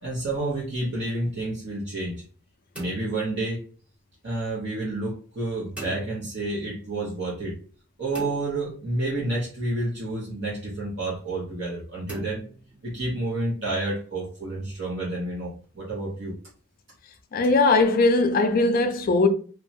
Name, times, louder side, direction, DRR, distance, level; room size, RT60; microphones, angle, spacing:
voice 1, 0.0-2.2 2.8-3.6 4.2-7.6 8.0-12.4 12.8-16.3, right 2 dB, 50° right, 0.7 m, -29 dB
sound 1, 2.8-4.1 5.8-6.8 8.1-9.4 12.1-13.3, right 1 dB, 5° right, 0.7 m, -43 dB
voice 2, 17.3-19.3, left 3 dB, 40° left, 0.3 m, -20 dB
2.9 x 2.2 x 2.7 m
head